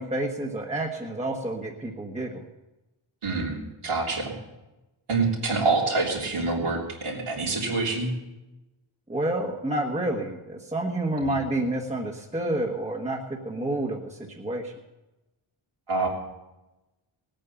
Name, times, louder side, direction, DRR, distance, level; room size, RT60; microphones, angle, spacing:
voice 1, 0.0-2.5 9.1-14.7, right 1 dB, 15° right, -1 dB, 1.3 m, -29 dB
voice 2, 3.2-4.3 5.1-8.1 11.2-11.4 15.9-16.1, right 3 dB, 80° right, -2 dB, 3.4 m, -26 dB
18.0 x 8.9 x 7.0 m, 1.0 s
wide cardioid pair, 120°, 50 cm